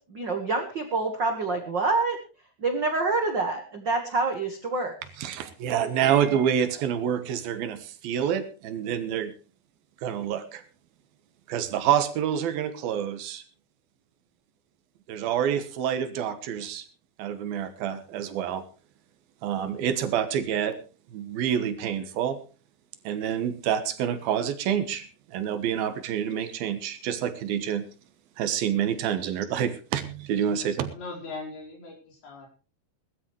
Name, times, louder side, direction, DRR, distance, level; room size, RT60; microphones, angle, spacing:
voice 1, 0.0-2.2 2.6-4.9, right 3 dB, 55° right, 5 dB, 1.2 m, -27 dB
voice 2, 5.2-9.3 10.0-10.6 11.5-13.4 15.1-16.9 17.2-18.7 19.4-20.8 21.1-22.4 23.0-27.9 28.4-30.9, right 9 dB, 75° right, 10 dB, 3.0 m, -27 dB
voice 3, 30.8-32.5, left 3 dB, 75° left, 0 dB, 6.5 m, -40 dB
20.0 x 13.5 x 3.2 m, 0.34 s
omnidirectional pair, 4.5 m